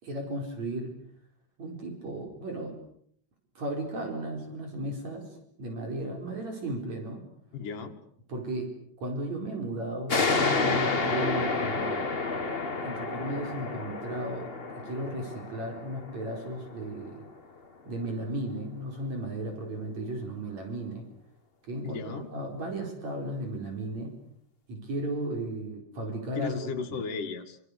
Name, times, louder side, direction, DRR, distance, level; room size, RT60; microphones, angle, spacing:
voice 1, 0.0-0.9 1.6-2.8 3.6-7.2 8.3-8.7 9.0-12.0 12.8-17.3 17.9-21.0 21.7-24.2 24.7-27.0, right 1 dB, 60° right, 3 dB, 5.7 m, -35 dB
voice 2, 7.5-8.0 21.8-22.3 26.4-27.6, left 5 dB, 85° left, 4 dB, 3.8 m, -35 dB
sound 1, 10.1-17.3, left 3 dB, 25° left, 1.4 m, -30 dB
27.0 x 26.5 x 6.8 m, 0.67 s
omnidirectional pair, 3.6 m